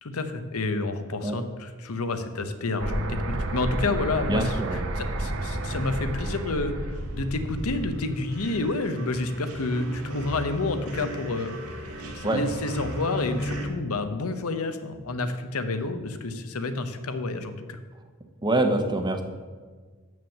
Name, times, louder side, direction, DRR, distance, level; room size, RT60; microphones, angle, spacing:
voice 1, 0.0-4.6 5.0-11.6 12.1-17.8, left 3 dB, 75° left, 9 dB, 0.8 m, -29 dB
sound 1, 2.8-8.6, right 1 dB, 60° right, 0.9 m, -31 dB
voice 2, 4.3-4.8 12.2-12.4 18.4-19.2, right 2 dB, 20° right, 6 dB, 0.8 m, -25 dB
sound 2, 6.9-13.7, right 1 dB, 90° right, 1.7 m, -36 dB
7.2 x 6.2 x 7.2 m, 1.5 s
head